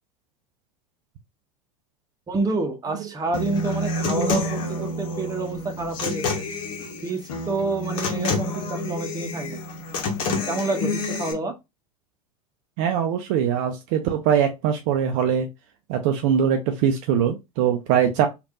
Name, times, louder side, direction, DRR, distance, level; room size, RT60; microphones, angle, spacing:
voice 1, 2.3-6.4 7.0-9.6 10.5-11.5, right 3 dB, 20° right, 0.9 m, -28 dB
Human voice / Acoustic guitar, 3.3-11.3, left 2 dB, 60° left, 1.0 m, -28 dB
voice 2, 12.8-15.5 15.9-18.3, right 8 dB, 55° right, 0.5 m, -22 dB
3.3 x 2.5 x 2.5 m
figure-of-eight pair, 80°, 18 cm